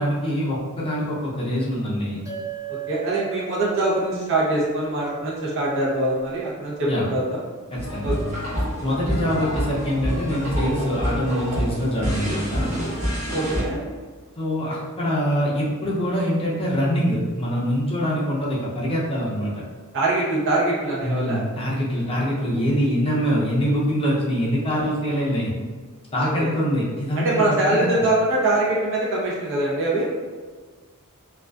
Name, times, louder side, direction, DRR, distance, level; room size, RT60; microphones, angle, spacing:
voice 1, 0.0-2.2 6.9-7.1 7.7-8.1 8.8-12.7 14.4-19.6 21.0-25.5 26.1-28.1, equal, 25° left, -5 dB, 0.5 m, -24 dB
sound 1, 2.2-6.9, right 10 dB, 15° right, 1.2 m, -39 dB
voice 2, 2.7-7.4 8.0-8.1 13.3-13.8 19.9-21.4 26.2-26.5 27.1-30.1, right 2 dB, 55° right, -6 dB, 0.7 m, -23 dB
sound 2, 7.7-13.6, equal, 35° right, 0.9 m, -27 dB
2.4 x 2.3 x 2.2 m, 1.5 s
head